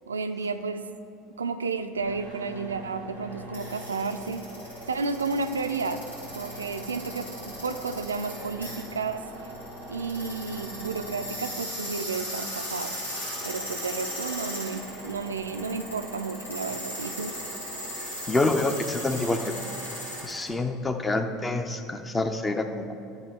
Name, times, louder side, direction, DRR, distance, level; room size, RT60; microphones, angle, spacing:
voice 1, 0.1-0.9 1.4-4.5 4.9-7.3 7.6-9.3 9.9-13.0 13.4-17.4, right 4 dB, 85° right, 9 dB, 0.3 m, -32 dB
sound 1, 1.9-20.5, equal, 90° left, 2.3 m, -37 dB
voice 2, 18.3-19.5 20.2-22.9, left 2 dB, 20° left, 7 dB, 0.7 m, -27 dB
12.0 x 6.8 x 3.6 m, 2.6 s
figure-of-eight pair, 70°, 0 cm